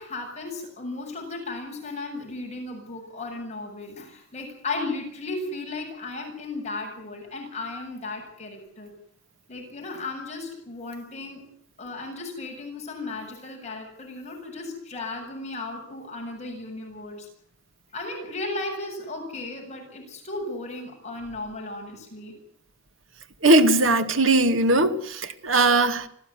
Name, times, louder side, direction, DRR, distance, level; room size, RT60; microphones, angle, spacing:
voice 1, 0.0-8.9 9.5-11.4 11.8-17.3 17.9-22.4, left 2 dB, 35° left, 7.9 m, -35 dB
voice 2, 23.4-26.1, right 2 dB, 75° right, 2.3 m, -19 dB
26.0 x 16.0 x 9.7 m
head